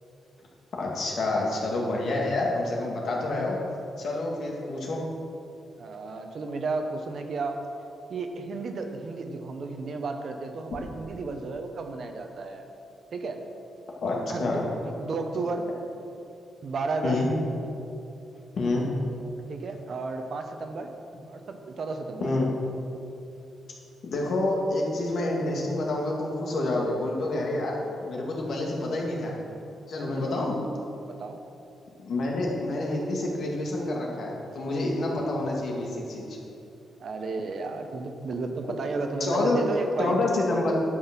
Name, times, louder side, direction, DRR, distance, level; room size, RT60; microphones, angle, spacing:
voice 1, 0.8-3.6 4.0-5.0 14.0-14.6 17.0-17.3 18.6-18.9 22.2-22.5 24.0-27.7 28.0-29.3 29.9-30.6 32.0-36.4 39.2-39.6 40.0-40.7, left 2 dB, 60° left, -2 dB, 2.1 m, -28 dB
voice 2, 5.8-7.6 8.1-12.6 13.1-13.4 14.3-15.7 16.6-17.2 19.4-20.9 21.3-22.3 29.9-30.5 31.0-31.4 37.0-40.2, right 3 dB, 55° right, 5 dB, 1.0 m, -33 dB
10.5 x 6.3 x 6.1 m, 2.7 s
cardioid pair, 115°, 0 cm